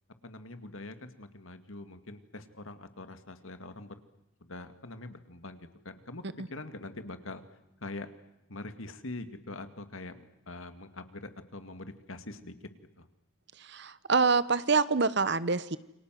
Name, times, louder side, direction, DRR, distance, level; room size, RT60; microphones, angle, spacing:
voice 1, 0.2-4.0 4.4-6.2 6.5-7.4 7.8-8.1 8.5-12.5 13.0-13.1, left 2 dB, 80° left, 9 dB, 2.3 m, -43 dB
voice 2, 13.7-15.8, right 4 dB, 55° right, 16 dB, 1.1 m, -26 dB
28.5 x 25.0 x 7.7 m, 0.90 s
head